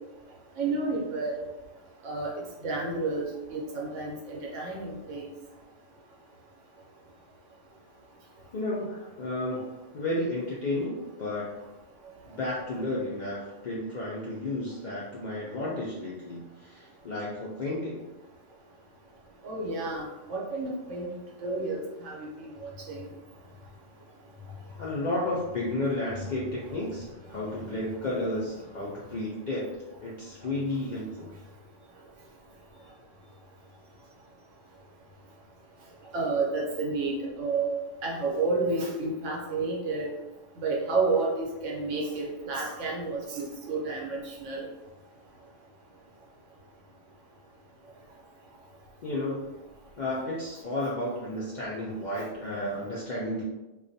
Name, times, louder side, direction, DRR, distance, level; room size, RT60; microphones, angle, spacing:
voice 1, 0.6-1.4 2.0-2.3 2.6-5.3 19.4-21.1 21.4-23.1 26.7-26.8 36.1-37.7 38.0-40.1 40.6-44.6 52.2-52.3, right 3 dB, 75° right, -3 dB, 1.0 m, -30 dB
voice 2, 8.5-11.5 12.3-18.0 24.8-29.7 30.0-31.3 49.0-49.5 50.0-53.4, left 1 dB, 80° left, -6 dB, 0.4 m, -32 dB
2.3 x 2.2 x 2.6 m, 1.1 s
omnidirectional pair, 1.3 m